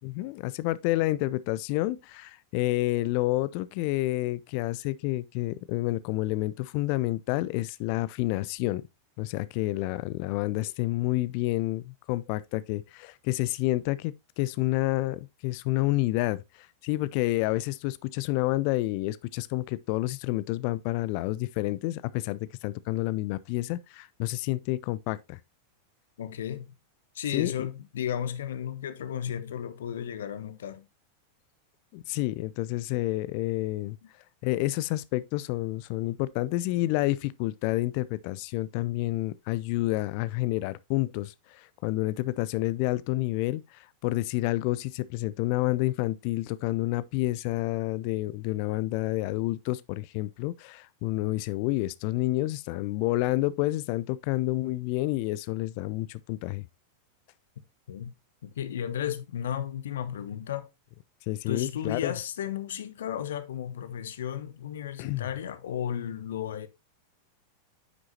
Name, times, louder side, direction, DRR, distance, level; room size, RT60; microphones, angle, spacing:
voice 1, 0.0-8.8 9.2-25.4 27.3-27.5 31.9-34.0 34.4-56.7 61.3-62.1 65.0-65.3, left 18 dB, 45° left, 0.4 m, -29 dB
voice 2, 26.2-26.7 27.1-30.9 57.9-58.1 58.4-60.7 61.5-66.7, left 9 dB, 60° left, 0.8 m, -34 dB
9.4 x 6.1 x 2.7 m
figure-of-eight pair, 90°, 0 cm